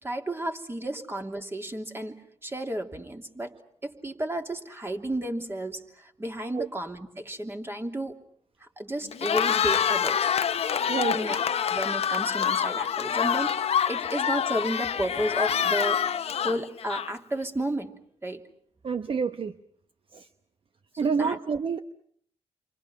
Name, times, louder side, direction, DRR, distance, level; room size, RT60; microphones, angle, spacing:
voice 1, 0.0-3.5 3.8-8.2 8.6-10.3 11.1-13.5 13.9-16.0 16.4-17.9 18.2-18.4 21.0-21.4, right 1 dB, 20° right, 4 dB, 3.1 m, -32 dB
Cheering, 9.1-17.3, left 8 dB, 60° left, 1.0 m, -26 dB
voice 2, 10.9-11.2 18.8-19.6 20.1-20.3 21.0-21.8, right 5 dB, 50° right, 9 dB, 1.0 m, -28 dB
29.5 x 24.5 x 6.1 m, 0.63 s
cardioid pair, 75°, 11 cm